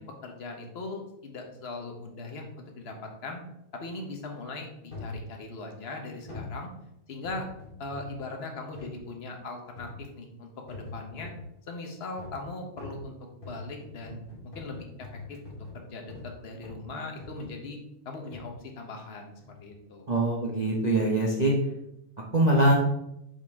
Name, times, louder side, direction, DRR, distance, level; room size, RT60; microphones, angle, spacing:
voice 1, 0.0-3.4 3.7-6.7 7.1-7.5 7.8-11.3 11.7-13.2 13.5-14.2 14.5-14.9 15.3-17.8 18.0-20.1, left 2 dB, 40° left, 2 dB, 0.9 m, -40 dB
sound 1, 4.9-5.2 6.3-6.6 7.2-8.2 8.7-9.0 9.8-10.1 10.7-11.5 12.2-12.5 12.8-16.3 16.6-16.9 17.2-17.6 18.3-18.5 19.4-19.7 20.3-20.4, left 3 dB, 25° left, 2.4 m, -42 dB
voice 2, 20.1-21.5 22.3-22.7, right 1 dB, 80° right, -2 dB, 0.3 m, -23 dB
7.6 x 5.0 x 3.6 m, 0.83 s
omnidirectional pair, 2.3 m